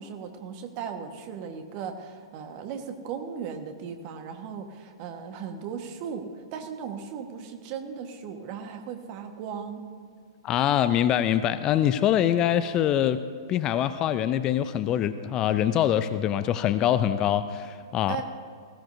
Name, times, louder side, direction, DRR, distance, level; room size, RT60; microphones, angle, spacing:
voice 1, 0.0-9.9 18.1-18.2, right 7 dB, 40° right, 6 dB, 1.4 m, -37 dB
voice 2, 10.4-13.2 13.5-18.2, left 10 dB, 30° left, 13 dB, 0.5 m, -24 dB
20.0 x 15.5 x 2.7 m, 2.2 s
figure-of-eight pair, 110°, 2 cm